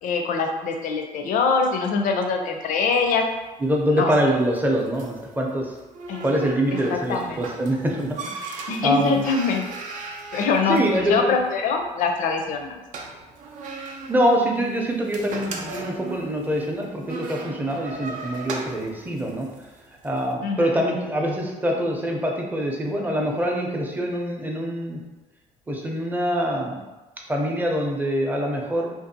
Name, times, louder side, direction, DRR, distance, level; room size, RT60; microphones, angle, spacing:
voice 1, 0.0-3.3 3.9-4.1 6.1-6.3 6.7-7.4 8.7-9.7 10.3-12.8 20.4-20.8, left 4 dB, 70° left, 4 dB, 0.4 m, -24 dB
sound 1, 3.0-20.2, right 3 dB, 65° right, 0.4 m, -38 dB
voice 2, 3.6-5.7 6.2-9.2 10.7-11.3 14.1-19.5 20.0-25.0 25.7-26.8 27.3-28.9, equal, 10° right, 0 dB, 0.5 m, -24 dB
2.6 x 2.3 x 2.7 m, 1.1 s
cardioid pair, 95°, 14 cm